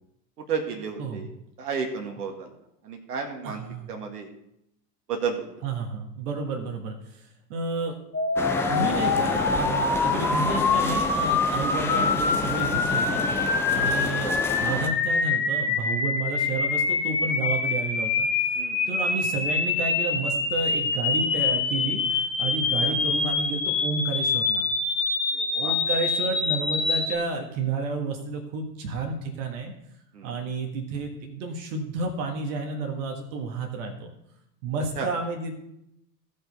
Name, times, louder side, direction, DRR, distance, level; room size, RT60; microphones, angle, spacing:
voice 1, 0.5-1.3 1.6-2.5 2.8-3.6 3.9-4.3 5.1-5.5 10.0-10.1 13.9-14.0 18.6-19.0 22.8-22.9 25.3-25.8 30.1-30.4 35.0-35.1, right 6 dB, 70° right, 3 dB, 1.8 m, -32 dB
voice 2, 3.4-3.9 5.6-7.2 7.5-8.0 8.7-13.2 13.7-18.3 18.9-24.6 25.5-29.7 30.2-34.1 34.6-35.5, right 3 dB, 50° right, 3 dB, 1.6 m, -31 dB
sound 1, 8.1-27.2, left 4 dB, 85° left, 1.4 m, -25 dB
sound 2, 8.4-14.9, left 3 dB, 5° left, 0.3 m, -29 dB
16.0 x 5.4 x 4.1 m, 0.79 s
figure-of-eight pair, 80°, 49 cm